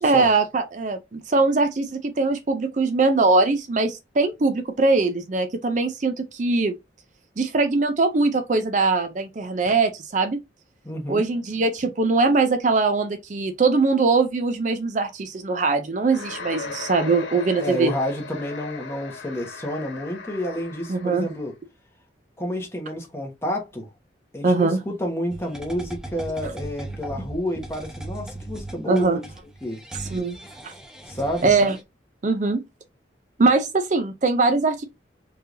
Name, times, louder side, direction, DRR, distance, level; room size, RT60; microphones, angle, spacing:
voice 1, 0.0-6.8 7.4-10.4 11.1-17.9 20.9-21.3 24.4-24.8 28.9-29.2 30.1-30.4 30.6-30.7 31.4-31.8 32.2-32.6 33.4-34.9, right 3 dB, 40° right, 0.4 m, -21 dB
voice 2, 10.8-11.3 17.6-21.5 22.4-23.9 24.3-29.3 29.6-29.8 31.0-31.5, equal, 15° left, 1.2 m, -29 dB
sound 1, 16.0-21.4, left 4 dB, 85° left, 1.1 m, -37 dB
sound 2, 25.3-31.8, right 1 dB, 5° right, 0.9 m, -38 dB
4.4 x 3.3 x 2.6 m
head